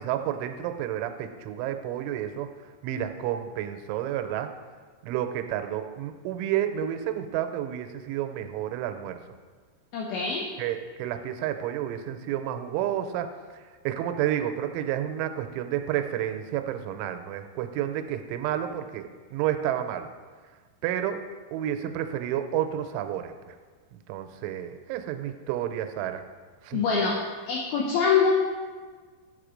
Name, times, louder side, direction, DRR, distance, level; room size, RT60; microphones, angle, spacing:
voice 1, 0.0-2.5 2.8-4.5 5.0-9.2 10.6-20.1 20.8-21.2 21.5-23.6 23.9-26.2 26.6-26.8, right 11 dB, 85° right, 7 dB, 3.0 m, -30 dB
voice 2, 9.9-10.5 26.7-27.2 27.5-28.4, left 5 dB, 85° left, -1 dB, 2.1 m, -24 dB
9.0 x 6.6 x 5.0 m, 1.5 s
omnidirectional pair, 5.5 m